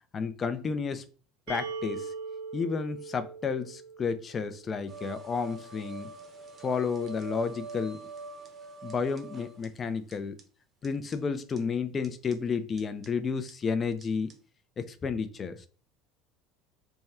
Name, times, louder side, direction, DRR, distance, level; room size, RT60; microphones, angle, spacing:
voice 1, 0.1-1.0 1.5-2.1 2.5-6.1 6.6-8.0 8.8-10.4 10.8-14.3 14.8-15.7, left 5 dB, 30° left, 0.5 m, -31 dB
sound 1, 1.5-5.2, right 4 dB, 90° right, 1.2 m, -41 dB
sound 2, 4.9-9.7 10.1-10.2 10.4-10.5 10.8-10.9 11.1-11.2 11.6-11.7 12.0-12.3 12.8-13.1 13.5-13.6 14.0-14.1 14.3-14.4, right 3 dB, 30° right, 0.8 m, -44 dB
3.5 x 2.2 x 4.2 m
supercardioid pair, 105°, 0 cm